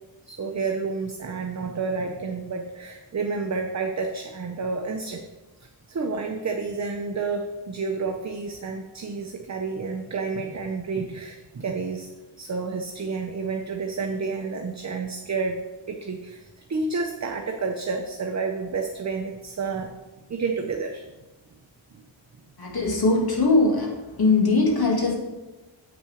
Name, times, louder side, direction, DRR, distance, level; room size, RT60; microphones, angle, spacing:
voice 1, 0.2-5.2 5.6-12.1 12.4-15.6 15.9-20.0 20.3-21.1 21.9-22.0, right 4 dB, 35° right, 4 dB, 0.7 m, -30 dB
voice 2, 22.6-23.9 24.2-25.2, left 3 dB, 50° left, -1 dB, 2.3 m, -20 dB
8.1 x 6.0 x 4.9 m, 1.1 s
wide cardioid pair, 95°, 48 cm